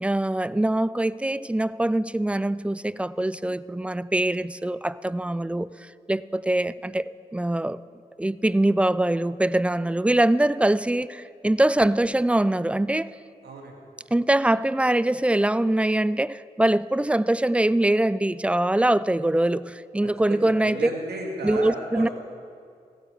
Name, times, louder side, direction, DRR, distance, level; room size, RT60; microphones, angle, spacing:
voice 1, 0.0-5.7 6.1-7.0 7.3-7.8 8.2-13.1 14.1-20.9 21.4-22.1, right 1 dB, 5° right, 18 dB, 0.3 m, -23 dB
voice 2, 13.4-13.8 20.0-22.1, right 2 dB, 75° right, 1 dB, 2.0 m, -34 dB
15.5 x 9.2 x 5.0 m, 2.3 s
supercardioid pair, 40°, 17 cm